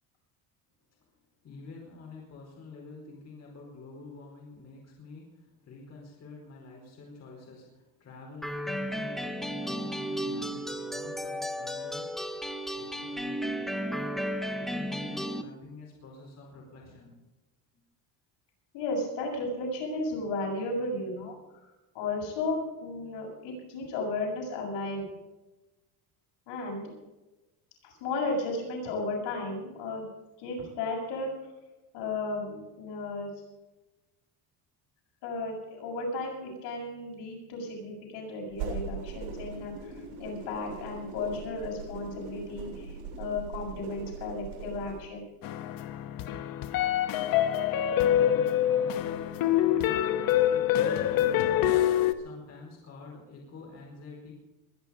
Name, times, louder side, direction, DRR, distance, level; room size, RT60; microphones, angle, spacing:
voice 1, 1.4-12.2 12.6-13.7 14.1-17.1 47.7-54.3, left 3 dB, 40° left, -1 dB, 4.6 m, -48 dB
sound 1, 8.4-15.4, equal, ahead, 0.8 m, -34 dB
voice 2, 18.7-21.4 21.9-25.1 26.5-26.9 28.0-30.1 30.4-31.3 31.9-33.3 35.2-45.2, left 2 dB, 75° left, -1 dB, 7.1 m, -34 dB
sound 2, 38.5-45.0, right 5 dB, 75° right, 7.4 m, -40 dB
sound 3, 45.4-52.1, left 11 dB, 55° left, 1.1 m, -25 dB
22.0 x 10.5 x 5.2 m, 1.1 s
cardioid pair, 150°, 42 cm